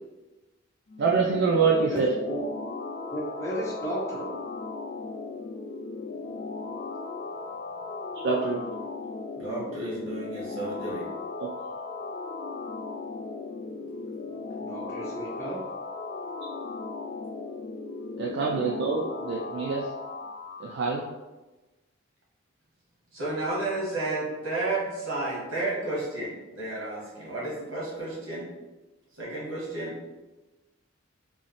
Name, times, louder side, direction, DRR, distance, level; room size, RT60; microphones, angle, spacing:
sound 1, 0.9-20.8, left 3 dB, 45° left, 0.3 m, -37 dB
voice 1, 1.0-2.1 8.2-8.6 11.4-11.5 18.2-19.9 20.6-21.1, right 5 dB, 55° right, -2 dB, 0.3 m, -25 dB
voice 2, 1.9-2.4 3.1-4.3 14.6-15.6, right 1 dB, 15° left, -5 dB, 0.7 m, -33 dB
voice 3, 9.4-11.0 23.1-28.5 29.2-29.9, right 2 dB, 70° right, -4 dB, 1.1 m, -32 dB
3.1 x 2.0 x 3.9 m, 1.1 s
head